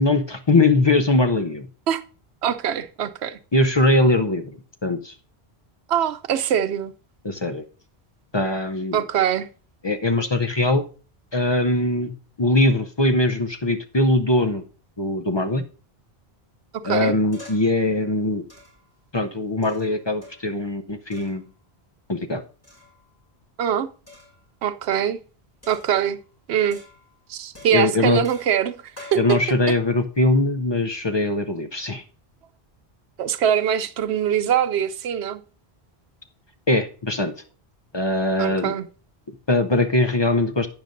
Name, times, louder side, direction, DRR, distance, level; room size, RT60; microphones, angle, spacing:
voice 1, 0.0-1.7 3.5-5.1 7.2-7.6 8.3-9.0 9.8-10.8 11.3-12.1 12.4-14.6 15.0-15.6 16.8-18.4 19.1-21.4 22.1-22.4 27.7-28.2 29.1-32.0 36.7-37.3 37.9-38.7 39.3-40.7, left 2 dB, 35° left, 0.5 m, -21 dB
voice 2, 2.4-3.4 5.9-6.9 8.9-9.5 16.8-17.1 23.6-23.9 24.6-25.2 25.7-26.2 26.5-26.8 27.3-28.8 29.1-29.4 33.2-35.4 38.4-38.9, right 9 dB, 85° right, 0.9 m, -23 dB
sound 1, 17.3-17.8 18.5-18.9 19.6-20.6 21.1-21.5 22.6-23.1 24.1-24.4 25.6-26.3 26.7-27.2 27.5-29.3, left 2 dB, 15° left, 5.9 m, -46 dB
11.5 x 8.9 x 2.6 m
omnidirectional pair, 1.1 m